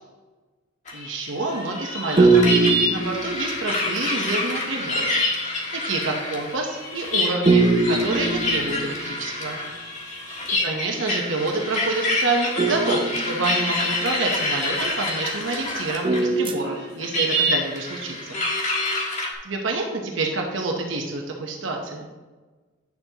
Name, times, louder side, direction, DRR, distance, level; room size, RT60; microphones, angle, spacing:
sound 1, 0.9-16.3 16.6-19.3, left 1 dB, 40° left, 1.4 m, -27 dB
voice 1, 0.9-5.1 5.8-9.6 10.6-18.4 19.4-22.1, right 2 dB, 90° right, 1 dB, 1.0 m, -28 dB
sound 2, 2.2-3.9 7.5-9.3 12.6-14.1 16.0-17.2, right 3 dB, 25° right, 0.5 m, -22 dB
9.4 x 6.9 x 2.9 m, 1.3 s
head